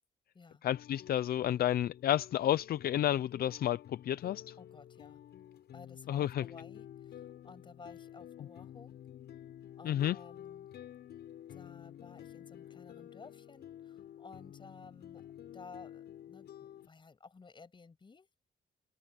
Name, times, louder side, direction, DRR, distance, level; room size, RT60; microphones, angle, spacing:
voice 1, 0.6-4.5 6.1-6.4 9.8-10.2, left 12 dB, 65° left, 0.5 m, -31 dB
sound 1, 0.7-16.9, left 11 dB, 85° left, 6.9 m, -51 dB
voice 2, 4.6-5.2 5.7-8.9 9.8-10.7 11.5-15.2 15.5-18.4, left 4 dB, 30° left, 6.3 m, -54 dB
wide cardioid pair, 145°, 17 cm